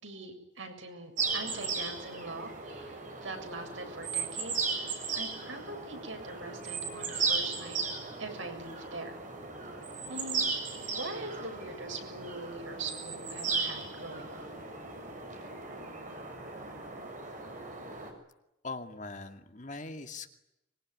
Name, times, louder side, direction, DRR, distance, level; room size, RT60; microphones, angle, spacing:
voice 1, 0.0-7.8 8.2-9.2 10.1-10.5 10.9-14.5, right 3 dB, 80° right, 5 dB, 7.3 m, -42 dB
sound 1, 1.2-18.1, right 4 dB, 40° right, 6.9 m, -36 dB
voice 2, 18.6-20.3, left 3 dB, 40° left, 7 dB, 2.4 m, -41 dB
25.0 x 23.0 x 9.7 m, 0.86 s
head